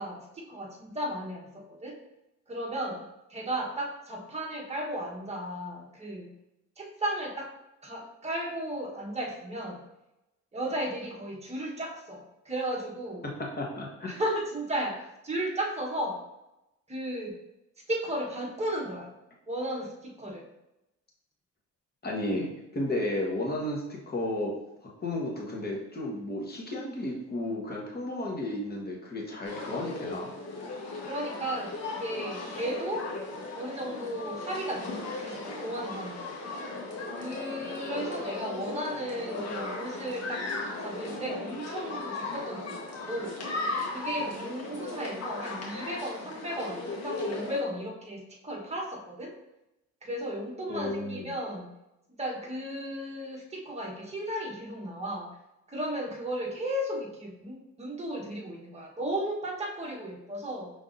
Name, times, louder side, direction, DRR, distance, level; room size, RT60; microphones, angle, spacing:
voice 1, 0.0-2.0 2.5-3.0 3.3-6.3 6.8-7.5 7.8-9.8 10.5-13.2 14.1-16.2 16.9-17.4 17.9-19.1 19.5-20.5 31.0-33.1 33.5-36.4 37.1-40.5 40.8-43.3 43.9-49.3 50.0-51.7 52.2-55.4 55.7-60.7, right 1 dB, 20° right, -2 dB, 1.2 m, -35 dB
voice 2, 13.6-14.1 22.0-24.5 25.0-30.3 50.7-51.3, left 1 dB, 30° left, -2 dB, 1.3 m, -33 dB
sound 1, 29.4-47.6, left 2 dB, 55° left, 1.3 m, -37 dB
5.5 x 3.5 x 2.6 m, 0.93 s
cardioid pair, 90°, 30 cm